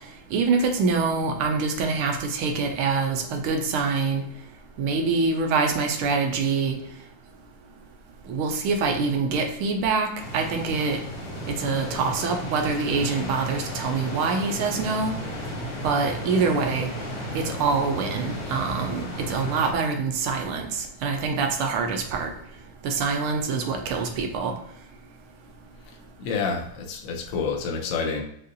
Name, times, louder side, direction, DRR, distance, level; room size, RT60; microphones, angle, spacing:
voice 1, 0.3-4.2 4.8-6.7 8.3-10.1 10.3-11.0 11.6-15.1 15.8-16.9 17.3-22.3 22.8-24.5, right 4 dB, 80° right, 4 dB, 1.6 m, -25 dB
sound 1, 10.2-19.7, equal, 60° left, 2.0 m, -34 dB
voice 2, 25.9-28.2, left 5 dB, 80° left, 1 dB, 0.7 m, -29 dB
6.4 x 2.5 x 2.7 m, 0.73 s
omnidirectional pair, 2.4 m